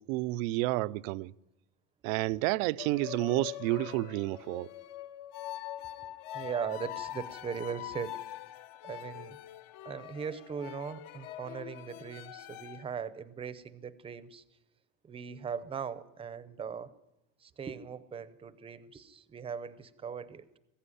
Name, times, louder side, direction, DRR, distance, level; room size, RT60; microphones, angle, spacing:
voice 1, 0.0-1.3 2.0-4.7, right 19 dB, 85° right, 0.7 m, -30 dB
sound 1, 2.8-12.8, left 13 dB, 55° left, 1.0 m, -43 dB
voice 2, 6.0-8.4 8.8-9.4 9.8-14.4 15.0-16.9 17.4-20.5, right 6 dB, 15° right, 0.7 m, -39 dB
21.0 x 15.0 x 10.0 m
cardioid pair, 175°, 39 cm